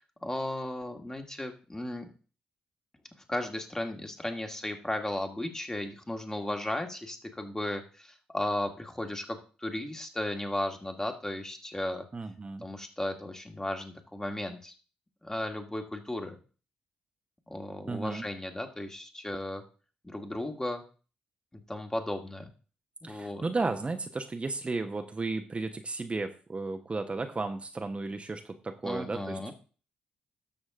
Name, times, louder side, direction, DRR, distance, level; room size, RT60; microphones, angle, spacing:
voice 1, 0.0-2.1 3.3-12.1 12.6-14.7 15.2-16.4 17.5-19.6 20.0-20.8 21.5-22.5 23.0-23.4 28.8-29.5, left 1 dB, 15° left, 4 dB, 2.1 m, -35 dB
voice 2, 12.1-12.7 17.9-18.3 23.0-29.5, right 3 dB, 30° right, 6 dB, 1.1 m, -34 dB
13.0 x 6.2 x 3.7 m, 0.38 s
hypercardioid pair, 40°, 4 cm